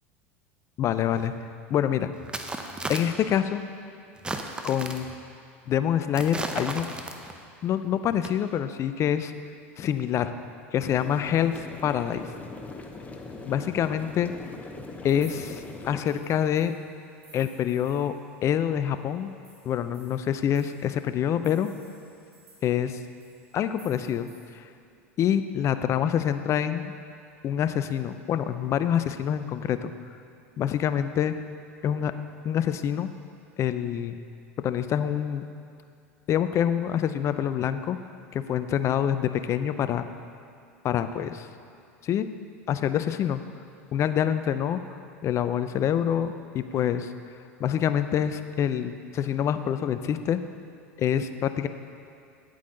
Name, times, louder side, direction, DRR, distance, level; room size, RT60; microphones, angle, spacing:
voice 1, 0.8-1.3 1.7-2.1 2.9-3.6 4.6-5.1 5.7-6.9 7.6-9.3 9.8-10.3 10.7-11.5 11.8-12.3 13.5-14.3 15.0-16.7 17.3-18.1 18.4-19.3 19.6-21.7 22.6-23.0 23.5-24.3 24.5-24.7 25.2-26.9 27.4-29.9 30.6-31.3 31.8-32.1 32.4-33.1 33.6-34.2 34.6-35.4 36.3-38.0 38.3-40.0 40.8-41.5 42.0-42.3 42.7-43.4 43.9-44.8 45.2-47.1 47.6-50.4 51.0-51.7, left 9 dB, 40° left, 11 dB, 0.5 m, -26 dB
sound 1, 1.2-1.3 2.2-3.4 4.2-5.2 6.2-7.5 8.1-8.3, right 2 dB, 10° right, 0.7 m, -35 dB
sound 2, 10.8-16.0, left 3 dB, 20° left, 0.9 m, -41 dB
sound 3, 15.1-18.6 18.9-19.0 19.3-24.5, right 1 dB, 80° right, 2.2 m, -56 dB
9.3 x 8.5 x 3.8 m, 2.4 s
hypercardioid pair, 85°, 8 cm